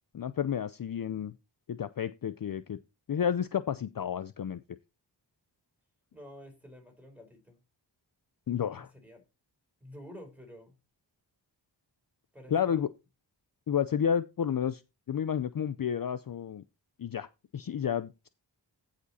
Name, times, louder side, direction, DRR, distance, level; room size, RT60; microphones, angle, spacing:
voice 1, 0.1-1.3 1.7-2.8 3.1-4.6 8.5-8.9 12.5-12.9 13.7-14.8 15.1-16.6 17.0-17.3 17.5-18.3, left 8 dB, 50° left, 0.5 m, -31 dB
voice 2, 6.1-7.6 8.8-9.2 9.8-10.8 12.3-12.8, equal, 5° right, 4.1 m, -49 dB
15.0 x 5.1 x 4.1 m
wide cardioid pair, 100°, 44 cm